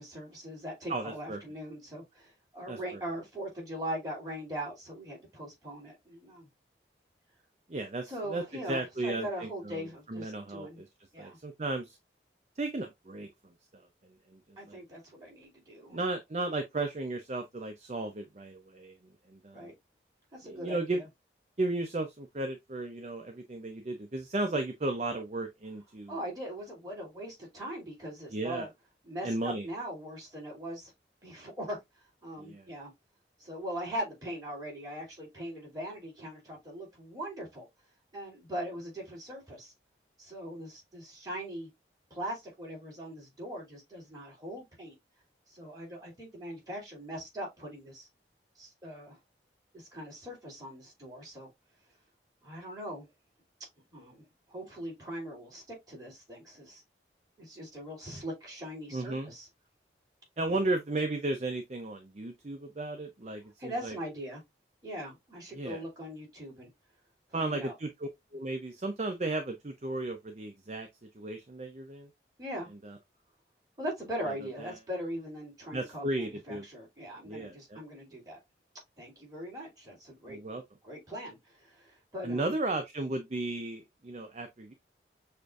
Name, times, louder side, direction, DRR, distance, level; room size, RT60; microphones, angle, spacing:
voice 1, 0.0-6.5 8.1-10.8 11.1-11.4 14.6-16.0 19.5-19.7 20.3-21.0 26.1-28.7 29.0-30.9 31.2-31.8 32.2-32.9 33.4-37.7 38.1-39.7 40.2-41.7 42.1-45.0 45.5-48.1 48.6-49.2 49.7-51.5 52.4-53.1 53.9-56.8 57.4-59.5 60.5-60.6 63.6-64.4 64.8-66.7 67.3-67.7 72.4-72.7 73.8-78.4 79.0-80.4 80.8-82.5, equal, 20° right, 2.8 m, -41 dB
voice 2, 0.9-1.4 2.7-2.8 7.7-9.8 10.1-10.7 11.2-12.0 12.6-13.8 14.3-14.8 15.9-19.0 19.3-19.7 20.4-21.0 21.6-26.2 28.3-28.7 29.2-29.7 32.4-32.7 58.9-59.3 60.4-64.0 65.5-65.8 67.3-70.9 71.1-72.1 72.8-73.0 74.6-74.8 75.7-76.7 77.2-77.8 80.3-80.6 82.2-84.7, right 2 dB, 40° right, 0.5 m, -35 dB
6.5 x 2.6 x 2.4 m
head